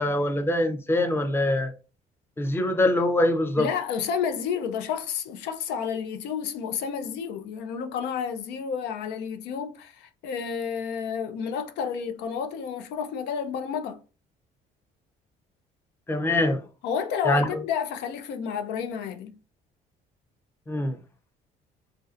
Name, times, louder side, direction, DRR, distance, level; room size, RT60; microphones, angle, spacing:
voice 1, 0.0-1.7 2.4-3.7 16.1-16.6 17.2-17.4 20.7-21.0, left 1 dB, 15° left, 0.5 m, -23 dB
voice 2, 3.6-14.0 16.8-19.4, left 7 dB, 85° left, 0.5 m, -30 dB
3.2 x 2.6 x 2.4 m
cardioid pair, 110°, 17 cm